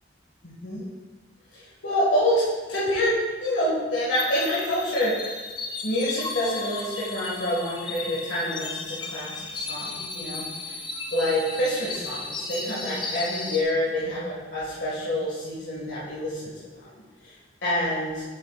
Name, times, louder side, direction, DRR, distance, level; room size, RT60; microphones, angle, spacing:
voice 1, 0.4-0.8 1.5-2.4 2.7-3.2 3.4-5.4 5.8-10.8 11.1-16.5 16.8-16.9 17.2-17.4 17.6-18.2, left 1 dB, 85° left, -8 dB, 1.9 m, -27 dB
sound 1, 4.1-13.6, left 3 dB, 25° left, 0.6 m, -35 dB
7.8 x 7.5 x 2.5 m, 1.4 s
head